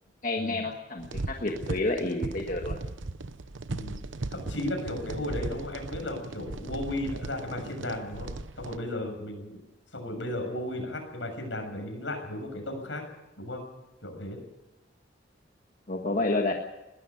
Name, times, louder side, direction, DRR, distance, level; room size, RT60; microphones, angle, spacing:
voice 1, 0.2-2.7 15.9-16.5, left 2 dB, 45° left, 1 dB, 1.6 m, -29 dB
sound 1, 1.0-8.8, right 2 dB, 90° right, 0.9 m, -37 dB
voice 2, 3.7-4.0 4.3-8.3 8.6-9.6 9.9-13.0 13.4-13.6 14.0-14.4, left 1 dB, 80° left, 3 dB, 6.9 m, -35 dB
20.5 x 13.0 x 9.9 m, 0.97 s
head